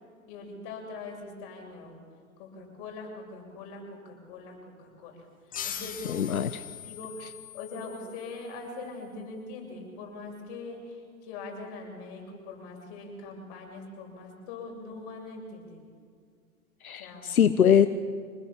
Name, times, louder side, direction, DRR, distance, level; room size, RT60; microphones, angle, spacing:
voice 1, 0.3-2.0 2.4-6.4 6.8-7.3 7.5-15.8 17.0-17.3, left 3 dB, 40° left, 2 dB, 7.8 m, -42 dB
sound 1, 5.5-8.8, left 9 dB, 20° left, 2.3 m, -41 dB
voice 2, 6.1-6.5 16.8-17.9, left 8 dB, 80° left, 11 dB, 1.2 m, -22 dB
27.0 x 20.0 x 7.5 m, 2.2 s
hypercardioid pair, 125°, 43 cm